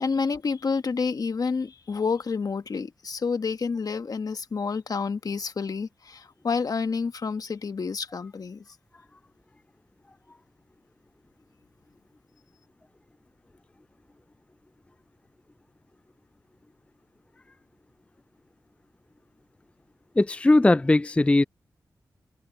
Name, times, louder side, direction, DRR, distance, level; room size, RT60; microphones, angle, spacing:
voice 1, 0.0-8.6, left 5 dB, 60° left, 1.3 m, -29 dB
voice 2, 20.2-21.4, left 2 dB, 15° left, 0.3 m, -19 dB
cardioid pair, 45°, 7 cm